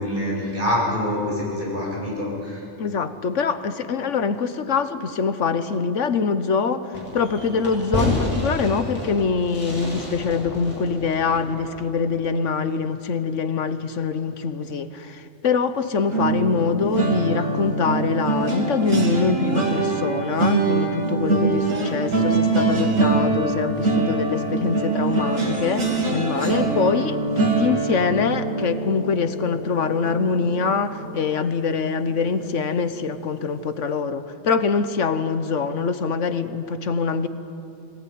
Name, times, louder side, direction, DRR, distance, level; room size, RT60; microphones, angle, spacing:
voice 1, 0.0-2.6, left 1 dB, 40° right, -5 dB, 7.7 m, -25 dB
voice 2, 2.8-37.3, left 5 dB, 70° left, 11 dB, 1.3 m, -24 dB
Fireworks, 6.9-12.2, left 1 dB, 25° left, 6.4 m, -30 dB
sound 1, 16.1-31.2 31.6-31.9 32.2-32.4, right 3 dB, 80° right, 3.4 m, -24 dB
21.5 x 18.5 x 9.5 m, 2.7 s
omnidirectional pair, 1.3 m